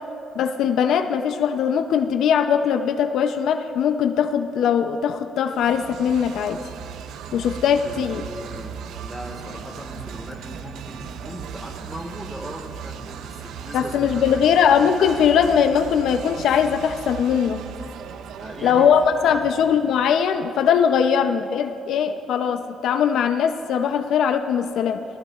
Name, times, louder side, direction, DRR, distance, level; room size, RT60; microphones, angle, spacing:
voice 1, 0.4-6.6 7.3-8.2 13.7-17.6 18.6-25.0, left 7 dB, 75° left, 8 dB, 0.5 m, -20 dB
sound 1, 5.5-20.2, right 8 dB, 80° right, 0.4 m, -37 dB
voice 2, 7.8-14.5 18.4-18.9 19.3-19.5, equal, 10° right, 3 dB, 1.6 m, -38 dB
18.0 x 15.0 x 2.4 m, 2.6 s
cardioid pair, 90°, 0 cm